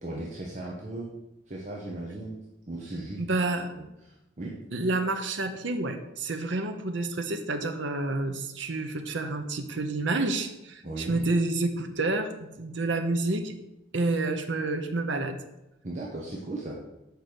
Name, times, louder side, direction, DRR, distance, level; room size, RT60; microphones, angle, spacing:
voice 1, 0.0-1.1 1.5-2.4 2.7-3.2 3.8-3.9 4.4-4.6 10.8-11.2 15.8-16.8, right 2 dB, 40° right, -4 dB, 1.1 m, -36 dB
voice 2, 3.2-3.7 4.7-13.5 13.9-15.4, right 2 dB, 75° right, 6 dB, 0.8 m, -29 dB
6.9 x 5.1 x 6.1 m, 0.90 s
head